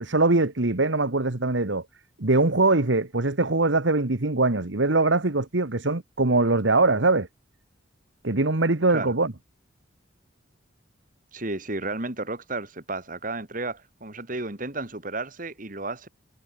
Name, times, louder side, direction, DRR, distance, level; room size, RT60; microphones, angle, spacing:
voice 1, 0.0-1.8 2.2-7.3 8.2-9.3, right 2 dB, 70° right, 1.6 m, -22 dB
voice 2, 11.3-16.1, right 2 dB, 45° right, 2.7 m, -33 dB
head